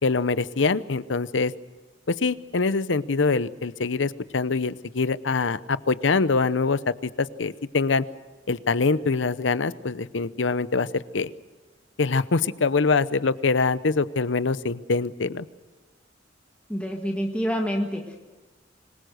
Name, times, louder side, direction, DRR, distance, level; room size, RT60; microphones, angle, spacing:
voice 1, 0.0-1.5 2.2-8.0 8.5-11.3 12.0-15.5, left 4 dB, 75° left, 16 dB, 0.8 m, -24 dB
voice 2, 16.7-18.2, equal, 5° left, 1 dB, 1.7 m, -27 dB
26.0 x 21.0 x 6.5 m, 1.2 s
head